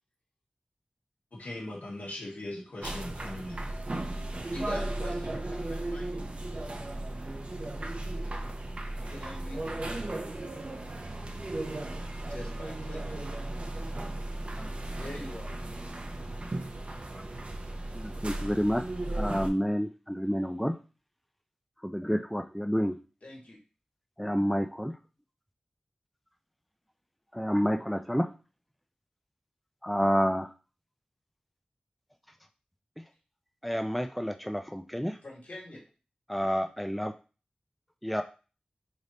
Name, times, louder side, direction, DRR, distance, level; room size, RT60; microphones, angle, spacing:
voice 1, 1.4-3.6, left 1 dB, 85° left, -3 dB, 1.3 m, -39 dB
sound 1, 2.8-19.5, right 2 dB, 45° right, 0.6 m, -36 dB
voice 2, 4.5-6.2 9.0-10.0 12.3-13.3 14.9-15.6 23.2-23.6 35.2-35.8, left 1 dB, 65° left, -3 dB, 1.7 m, -44 dB
voice 3, 17.9-18.8 19.1-20.8 21.8-23.0 24.2-24.9 27.3-28.3 29.8-30.5 33.6-35.2 36.3-37.1 38.0-38.2, equal, ahead, 5 dB, 0.3 m, -29 dB
3.3 x 2.6 x 4.0 m, 0.34 s
wide cardioid pair, 45°, 3 cm